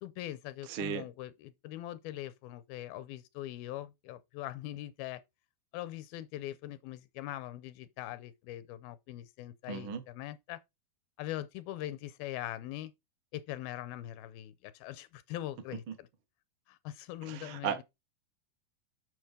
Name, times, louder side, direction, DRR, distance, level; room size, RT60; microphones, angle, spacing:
voice 1, 0.0-5.2 5.7-10.6 11.2-12.9 13.3-16.1 16.7-17.8, left 14 dB, 85° left, 2.5 m, -42 dB
voice 2, 0.7-1.0 9.7-10.0 17.2-17.8, right 8 dB, 60° right, 1.3 m, -36 dB
7.0 x 6.3 x 5.0 m
omnidirectional pair, 4.3 m